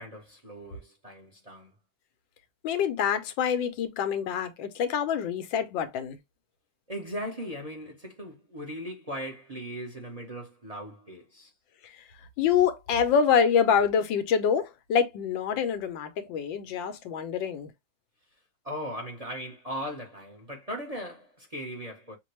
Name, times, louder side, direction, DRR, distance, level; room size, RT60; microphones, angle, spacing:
voice 1, 0.0-1.7 6.9-11.5 18.6-22.2, equal, 30° right, 0.8 m, -38 dB
voice 2, 2.6-6.2 11.8-12.0 12.4-17.7, left 7 dB, 90° left, 1.5 m, -26 dB
6.0 x 2.2 x 3.1 m
omnidirectional pair, 2.0 m